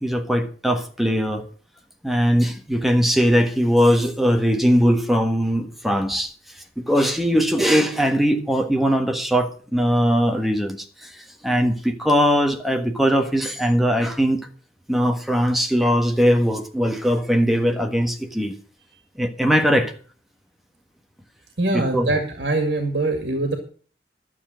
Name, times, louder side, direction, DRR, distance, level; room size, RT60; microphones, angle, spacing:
voice 1, 0.0-1.4 2.0-6.3 6.8-10.8 11.0-14.4 14.9-18.5 19.2-19.9 21.7-22.1, equal, ahead, 1.5 m, -20 dB
voice 2, 21.6-23.6, right 2 dB, 75° right, 2.0 m, -23 dB
12.0 x 7.1 x 7.5 m
head